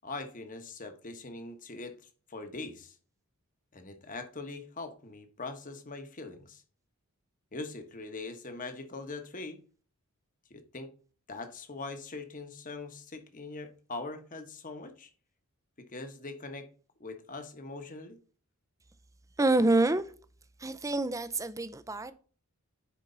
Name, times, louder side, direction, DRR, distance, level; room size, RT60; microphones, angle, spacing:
voice 1, 0.0-2.0 2.3-2.9 3.7-6.6 7.5-9.6 10.5-10.9 11.3-15.1 15.8-16.7 17.0-18.2, left 3 dB, 35° left, 1.2 m, -42 dB
voice 2, 19.4-20.0 20.6-22.1, right 2 dB, 15° right, 0.5 m, -27 dB
10.0 x 4.4 x 3.9 m
head